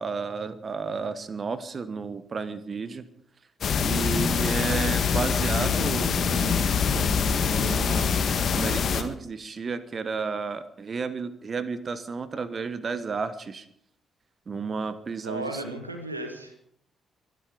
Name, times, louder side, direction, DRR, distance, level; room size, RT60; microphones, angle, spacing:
voice 1, 0.0-3.1 3.8-8.1 8.5-13.7 14.5-15.7, right 4 dB, 40° right, 14 dB, 1.2 m, -32 dB
sound 1, 3.6-9.0, left 6 dB, 50° left, 1.7 m, -24 dB
voice 2, 15.2-16.7, right 1 dB, 85° right, 7 dB, 1.5 m, -35 dB
23.5 x 12.0 x 5.1 m, 0.69 s
figure-of-eight pair, 40°, 0 cm